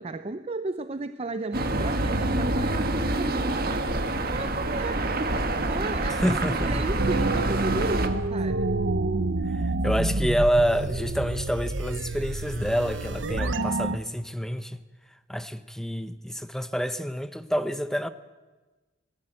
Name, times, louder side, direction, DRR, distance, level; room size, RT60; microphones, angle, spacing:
voice 1, 0.0-3.9 4.3-8.7, right 2 dB, 30° right, 0.6 m, -34 dB
sound 1, 1.5-8.1, right 2 dB, 50° right, 1.7 m, -27 dB
voice 2, 6.1-6.9 9.4-14.8 15.3-18.1, equal, 5° left, 0.9 m, -28 dB
sound 2, 7.0-14.0, right 2 dB, 70° right, 1.0 m, -28 dB
21.0 x 15.0 x 9.0 m
head